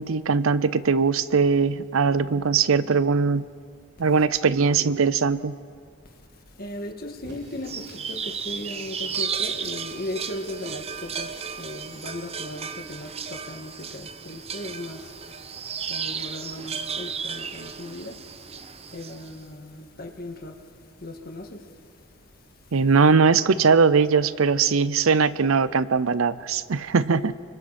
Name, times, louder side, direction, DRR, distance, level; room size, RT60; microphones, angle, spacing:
voice 1, 0.0-3.4 4.0-5.6 22.7-27.3, right 5 dB, 70° right, 0.6 m, -20 dB
voice 2, 6.6-15.4 15.9-18.2 18.5-18.6 18.9-20.6 21.0-21.7 27.1-27.3, left 1 dB, 45° left, 2.0 m, -37 dB
Fire, 7.1-12.8, right 1 dB, 85° right, 6.4 m, -50 dB
sound 1, 7.6-19.3, right 6 dB, 30° right, 0.7 m, -34 dB
29.5 x 24.0 x 4.3 m
head